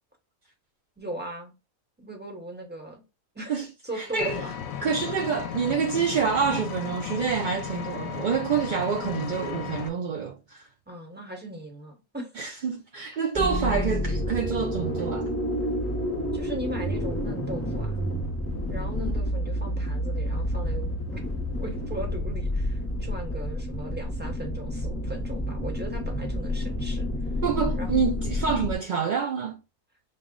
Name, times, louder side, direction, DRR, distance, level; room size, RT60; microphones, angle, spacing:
voice 1, 1.0-1.5 2.0-3.0 3.3-3.5 3.8-4.6 10.9-12.3 16.3-18.0 18.7-21.2 21.6-27.1 27.8-27.9, right 1 dB, 10° right, 0.9 m, -38 dB
voice 2, 4.0-4.4 4.8-10.7 12.4-15.3 27.4-29.6, right 6 dB, 65° right, 0.4 m, -27 dB
Vehicle, 4.2-9.9, left 8 dB, 75° left, 1.0 m, -35 dB
sound 1, 13.4-28.8, equal, 15° left, 0.5 m, -29 dB
5.4 x 2.0 x 3.7 m
omnidirectional pair, 1.4 m